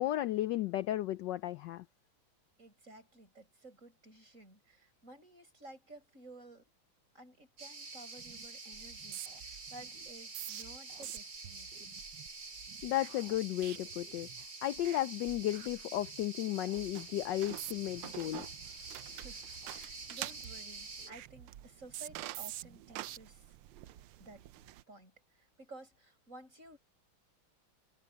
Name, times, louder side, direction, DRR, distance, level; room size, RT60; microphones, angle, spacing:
voice 1, 0.0-1.8 12.8-14.3 14.6-18.5, left 14 dB, 75° left, 1.1 m, -34 dB
voice 2, 2.6-6.7 7.1-12.0 19.1-19.4 19.7-23.5 24.2-24.4 24.9-26.8, right 2 dB, 35° right, 7.9 m, -54 dB
sound 1, 7.6-21.1, right 3 dB, 55° right, 4.9 m, -47 dB
sound 2, 8.2-8.5 8.7-14.5 14.8-15.0 15.3-16.2 16.6-16.9 17.4-18.0 18.4-19.9 20.2-23.2 23.7-24.0, right 13 dB, 70° right, 1.2 m, -49 dB
sound 3, 16.7-24.8, right 15 dB, 90° right, 1.5 m, -48 dB
omnidirectional pair, 2.3 m